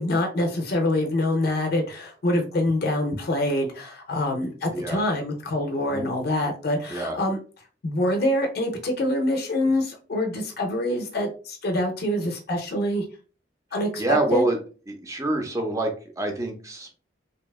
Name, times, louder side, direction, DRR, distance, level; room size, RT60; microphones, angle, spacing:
voice 1, 0.0-7.4 7.8-13.0 13.7-14.4, left 1 dB, 60° left, 2 dB, 0.5 m, -25 dB
voice 2, 14.0-14.6 14.9-16.9, right 2 dB, 20° right, 4 dB, 0.5 m, -26 dB
2.7 x 2.2 x 2.3 m, 0.37 s
head